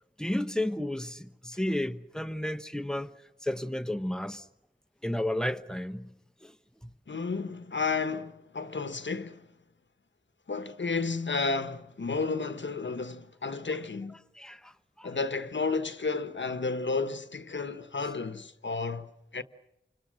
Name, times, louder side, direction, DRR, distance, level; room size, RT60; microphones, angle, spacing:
voice 1, 0.2-3.1 3.4-4.5 5.0-6.1 6.4-6.5 6.8-6.9 14.4-14.7 15.0-15.1, left 1 dB, 5° left, 1.0 m, -32 dB
voice 2, 7.1-9.5 10.5-14.1 15.0-19.4, left 4 dB, 75° left, 1.2 m, -32 dB
29.0 x 26.0 x 6.4 m
wide cardioid pair, 55°, 19 cm